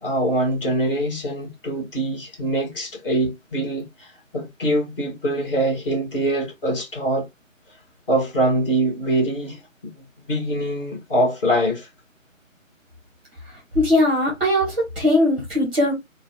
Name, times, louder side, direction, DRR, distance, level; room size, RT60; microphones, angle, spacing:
voice 1, 0.0-7.3 8.1-9.6 10.3-11.9, right 1 dB, 40° left, 2.0 m, -23 dB
voice 2, 13.7-15.9, left 1 dB, 5° right, 0.8 m, -19 dB
3.8 x 2.4 x 3.1 m
figure-of-eight pair, 150°, 41 cm